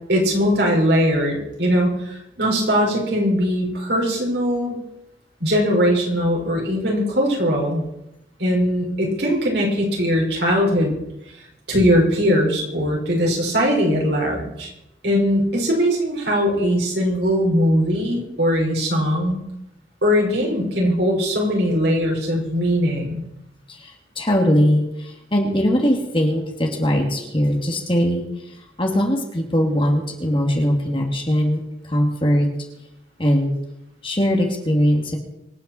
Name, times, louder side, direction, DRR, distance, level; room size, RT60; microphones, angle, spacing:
voice 1, 0.1-4.8 5.4-7.8 8.4-11.0 11.7-14.7 15.0-19.4 20.0-23.2, equal, 65° right, -2 dB, 5.6 m, -20 dB
voice 2, 23.7-31.6 31.9-32.5 33.2-33.5 34.0-35.2, equal, 30° left, 1 dB, 2.6 m, -20 dB
25.5 x 9.5 x 4.5 m, 0.85 s
head